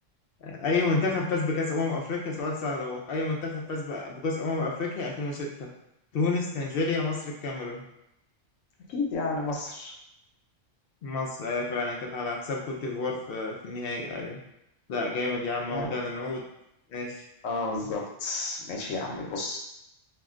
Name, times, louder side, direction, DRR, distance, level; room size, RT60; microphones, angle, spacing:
voice 1, 0.4-5.7 6.1-7.8 11.0-14.4 14.9-16.4 16.9-17.2, left 3 dB, 60° left, 0 dB, 0.7 m, -30 dB
voice 2, 8.9-9.9 15.7-15.9 17.4-19.6, left 3 dB, 85° left, 0 dB, 1.0 m, -31 dB
2.5 x 2.1 x 3.6 m, 0.83 s
omnidirectional pair, 1.3 m